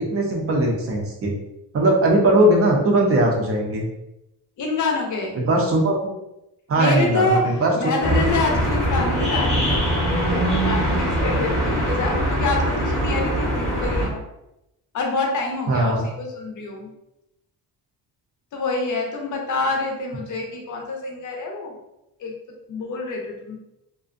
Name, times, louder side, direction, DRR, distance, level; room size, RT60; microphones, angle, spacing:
voice 1, 0.0-1.3 1.7-3.8 5.4-6.0 6.7-7.7 8.1-8.2 15.7-16.1, right 1 dB, 35° right, 0 dB, 0.5 m, -19 dB
voice 2, 4.6-5.4 6.8-14.2 14.9-16.9 18.5-21.7 22.2-22.3 22.7-23.6, left 3 dB, 45° left, 1 dB, 0.5 m, -27 dB
sound 1, 8.0-14.1, equal, ahead, 0.7 m, -22 dB
2.4 x 2.1 x 2.5 m, 0.87 s
cardioid pair, 165°, 42 cm